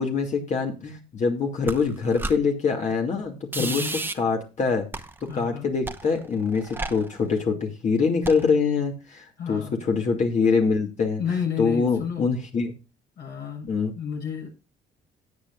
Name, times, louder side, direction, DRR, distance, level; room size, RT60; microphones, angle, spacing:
voice 1, 0.0-3.8 4.2-4.9 5.2-11.2 11.6-12.7 13.7-13.9, left 5 dB, 45° left, 2 dB, 2.2 m, -24 dB
sound 1, 1.7-2.4 3.5-4.1 4.9-5.4 5.9-7.4 8.2-8.5, right 2 dB, 10° right, 0.9 m, -33 dB
voice 2, 3.6-4.0 5.3-5.7 9.4-9.8 11.2-12.3 13.2-14.5, left 7 dB, 75° left, -1 dB, 7.4 m, -31 dB
18.0 x 7.9 x 2.4 m, 0.29 s
cardioid pair, 110°, 17 cm